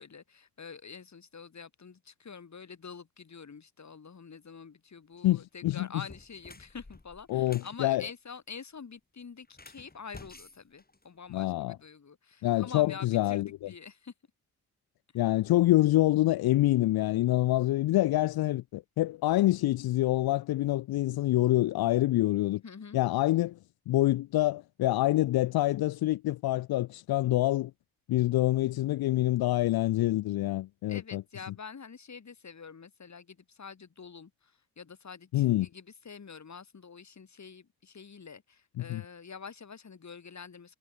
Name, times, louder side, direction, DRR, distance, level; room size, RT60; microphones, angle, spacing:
voice 1, 0.0-14.1 22.6-23.0 30.9-40.8, left 5 dB, 45° left, 3.4 m, -46 dB
voice 2, 5.2-5.9 7.3-8.0 11.3-11.8 12.4-13.5 15.1-22.6 22.9-23.6 23.9-27.7 28.1-31.2 35.3-35.7 38.8-39.0, left 16 dB, 75° left, 0.5 m, -26 dB
sound 1, 5.2-5.4 6.0-7.8 9.4-11.5, left 2 dB, 25° left, 6.8 m, -52 dB
cardioid pair, 60°, 37 cm